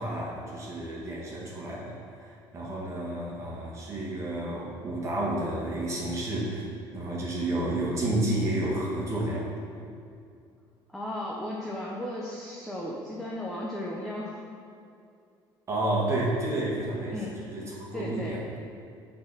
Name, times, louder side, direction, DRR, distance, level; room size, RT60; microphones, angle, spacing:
voice 1, 0.0-6.6 6.9-9.5 9.8-9.9 15.7-17.2 17.5-18.4, right 1 dB, 30° right, -5 dB, 1.5 m, -30 dB
voice 2, 10.9-14.4 17.1-17.4 17.9-18.4, left 1 dB, 5° left, -4 dB, 0.7 m, -35 dB
6.3 x 4.2 x 6.0 m, 2.4 s
cardioid pair, 130°, 9 cm